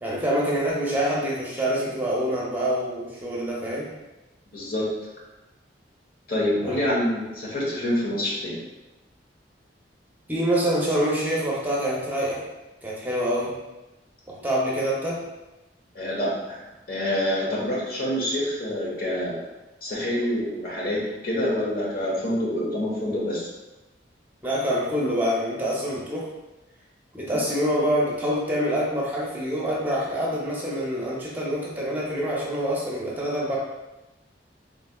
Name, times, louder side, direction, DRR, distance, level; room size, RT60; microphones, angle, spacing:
voice 1, 0.0-3.9 6.6-6.8 10.3-12.4 12.8-13.6 14.4-15.3 24.4-26.3 27.1-33.6, equal, 10° right, -5 dB, 0.7 m, -26 dB
voice 2, 4.5-4.9 6.3-8.6 15.9-16.6 16.9-19.4 19.8-23.5, left 1 dB, 55° left, -5 dB, 1.1 m, -26 dB
4.0 x 3.2 x 2.3 m, 1.0 s
head